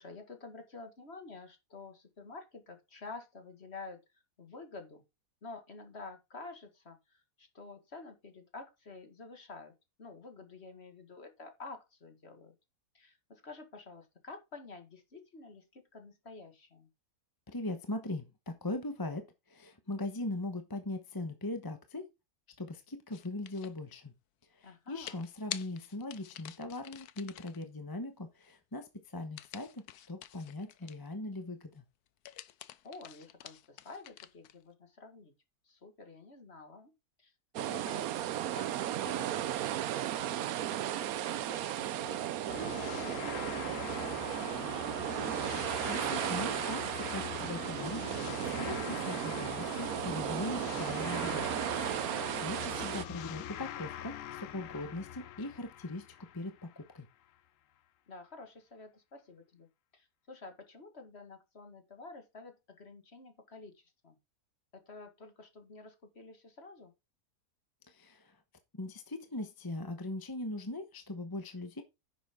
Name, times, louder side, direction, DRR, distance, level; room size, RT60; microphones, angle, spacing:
voice 1, 0.0-4.0 4.4-5.0 5.4-9.7 10.0-12.6 12.9-16.9 24.6-25.2 32.8-35.3 35.6-36.9 37.2-39.6 40.1-43.8 44.1-44.9 52.2-52.7 58.1-59.7 59.9-64.2 64.7-66.9, left 3 dB, 45° left, 2.1 m, -50 dB
voice 2, 17.5-22.1 22.6-24.1 24.6-31.8 45.9-51.5 51.9-56.0 56.3-57.0 67.9-68.3 68.7-71.8, left 2 dB, 15° left, 1.0 m, -40 dB
sound 1, 23.1-23.8 25.1-27.6 29.4-31.1 32.1-34.6, left 12 dB, 85° left, 1.2 m, -47 dB
sound 2, 37.6-53.1, right 12 dB, 70° right, 1.1 m, -35 dB
sound 3, 42.5-56.8, left 11 dB, 65° left, 1.0 m, -43 dB
10.0 x 7.3 x 3.7 m
omnidirectional pair, 1.6 m